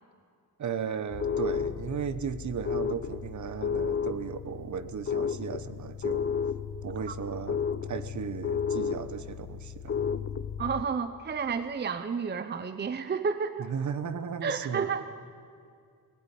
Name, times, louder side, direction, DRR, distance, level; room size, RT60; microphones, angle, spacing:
voice 1, 0.6-6.3 6.8-9.9 13.6-14.9, right 7 dB, 50° right, 13 dB, 1.0 m, -35 dB
sound 1, 1.1-10.8, left 7 dB, 35° left, 0.7 m, -33 dB
voice 2, 10.6-13.7 14.4-15.2, right 5 dB, 30° right, 11 dB, 0.6 m, -31 dB
19.5 x 18.5 x 10.0 m, 2.3 s
wide cardioid pair, 180°, 37 cm